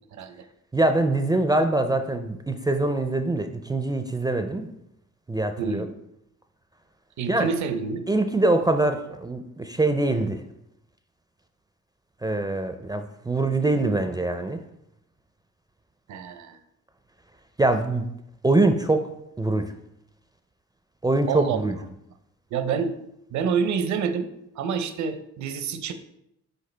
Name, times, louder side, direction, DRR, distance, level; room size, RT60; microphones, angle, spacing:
voice 1, 0.1-0.4 5.6-5.9 7.2-8.0 16.1-16.6 21.3-21.6 22.5-22.9 23.3-25.9, right 6 dB, 70° right, 9 dB, 0.7 m, -27 dB
voice 2, 0.7-4.7 5.3-5.9 7.3-7.5 8.1-10.4 12.2-14.6 17.6-18.0 18.4-19.1 19.4-19.7 21.0-21.8, right 2 dB, 15° right, 7 dB, 0.4 m, -23 dB
6.6 x 4.6 x 3.3 m, 0.81 s
cardioid pair, 90°, 30 cm